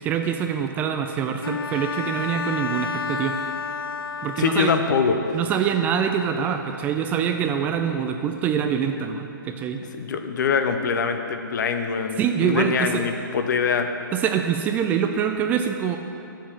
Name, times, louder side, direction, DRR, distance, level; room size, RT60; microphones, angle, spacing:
voice 1, 0.0-3.4 4.2-4.7 5.3-9.8 12.2-13.0 14.1-16.0, right 8 dB, 15° right, 5 dB, 0.3 m, -25 dB
Bowed string instrument, 1.4-5.1, left 5 dB, 85° left, 0.5 m, -30 dB
voice 2, 4.4-5.4 9.9-13.9, left 5 dB, 55° left, 6 dB, 0.9 m, -23 dB
8.3 x 7.3 x 7.4 m, 2.8 s
hypercardioid pair, 140°, 12 cm